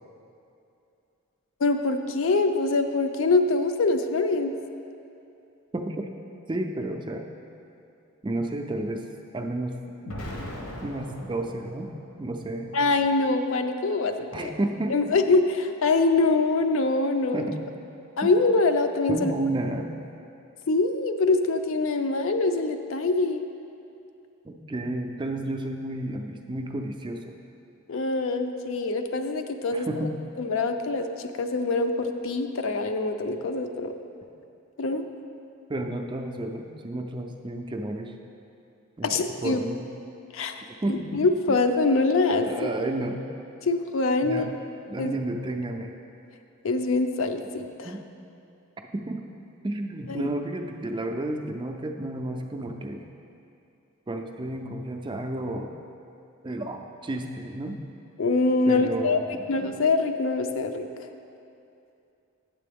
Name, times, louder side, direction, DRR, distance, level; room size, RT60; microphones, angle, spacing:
voice 1, 1.6-4.5 12.7-14.5 14.9-17.4 18.2-19.3 20.7-23.4 27.9-29.9 30.4-33.9 34.8-35.1 39.0-39.6 40.3-40.6 40.9-42.5 43.6-44.5 45.0-45.1 46.6-47.9 50.1-50.2 58.2-60.9, left 3 dB, 60° left, 7 dB, 0.4 m, -24 dB
voice 2, 5.7-6.1 6.5-7.3 8.2-9.0 9.3-9.8 10.8-11.9 12.2-12.7 14.3-15.0 17.3-17.6 18.2-18.3 19.1-19.9 24.4-27.3 29.7-30.1 35.7-38.1 39.0-39.1 39.4-39.8 40.8-41.0 42.5-43.2 44.2-44.5 44.9-45.9 47.8-48.0 48.9-49.2 49.6-53.0 54.1-55.7 56.4-57.8 58.7-59.5, right 1 dB, 20° right, 4 dB, 0.3 m, -31 dB
Explosion, 10.0-12.2, left 1 dB, 85° left, 1.1 m, -38 dB
9.1 x 7.5 x 3.5 m, 2.7 s
head